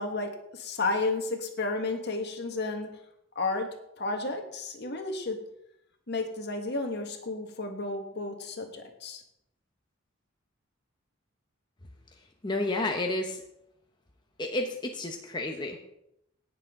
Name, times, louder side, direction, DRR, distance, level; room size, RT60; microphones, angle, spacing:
voice 1, 0.0-2.9 3.3-3.7 4.0-5.4 6.1-9.2, left 3 dB, 55° left, 4 dB, 1.6 m, -32 dB
voice 2, 12.4-13.4 14.4-15.8, left 2 dB, 20° left, 2 dB, 0.9 m, -30 dB
18.0 x 7.0 x 3.7 m, 0.82 s
head